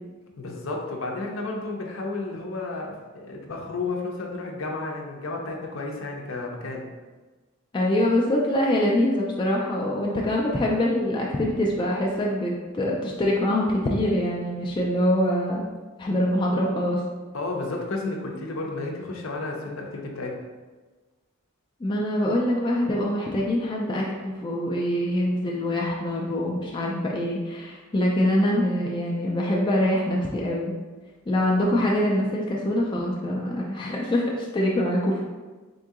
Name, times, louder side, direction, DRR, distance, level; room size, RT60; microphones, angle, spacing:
voice 1, 0.4-6.8 17.3-20.3, left 3 dB, 65° left, 0 dB, 0.6 m, -32 dB
voice 2, 7.7-15.7 16.0-17.0 21.8-30.7 31.3-35.2, left 1 dB, 20° left, -2 dB, 0.3 m, -24 dB
3.8 x 2.7 x 3.6 m, 1.3 s
head